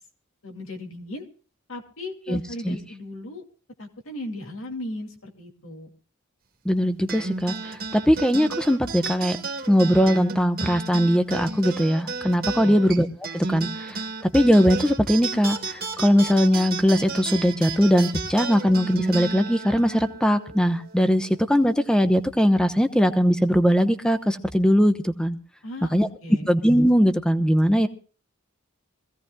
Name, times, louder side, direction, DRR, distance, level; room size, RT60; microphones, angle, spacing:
voice 1, 0.4-1.3 1.7-3.5 3.8-5.9 12.6-12.8 25.6-26.5, left 1 dB, 75° left, 3 dB, 2.5 m, -36 dB
voice 2, 2.3-2.8 6.6-9.4 9.7-13.1 13.3-14.0 14.3-25.4 25.9-26.1 26.5-27.9, equal, 5° left, 9 dB, 0.9 m, -20 dB
sound 1, 7.1-21.8, right 4 dB, 45° right, 1.7 m, -33 dB
24.5 x 16.0 x 2.3 m, 0.39 s
head